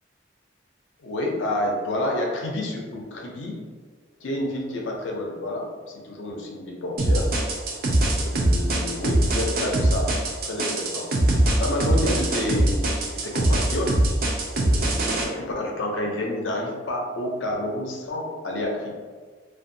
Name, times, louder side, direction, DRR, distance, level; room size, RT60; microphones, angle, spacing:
voice 1, 1.0-3.6 4.2-7.3 8.1-10.2 10.4-11.1 11.6-14.0 14.5-18.9, left 1 dB, 90° left, 0 dB, 0.5 m, -29 dB
sound 1, 7.0-15.2, right 1 dB, 50° right, 0.4 m, -22 dB
2.6 x 2.3 x 2.6 m, 1.5 s
head